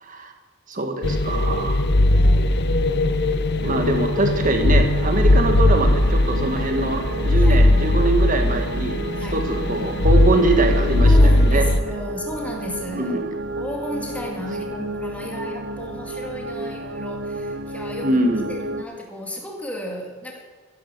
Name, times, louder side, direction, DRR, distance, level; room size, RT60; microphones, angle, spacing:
voice 1, 0.0-0.3 0.7-1.8 3.6-9.0 9.3-11.7 13.0-13.3 18.0-18.5, right 2 dB, 35° right, 5 dB, 1.8 m, -23 dB
sound 1, 1.0-11.8, left 1 dB, 50° left, 0.8 m, -18 dB
voice 2, 2.1-2.6 7.4-7.6 9.1-9.4 11.0-13.2 13.6-18.2 18.5-20.4, equal, 5° left, 0 dB, 2.3 m, -33 dB
ps Lies of peace, 3.6-18.8, right 2 dB, 55° right, 0.7 m, -31 dB
14.5 x 11.0 x 6.8 m, 1.4 s
head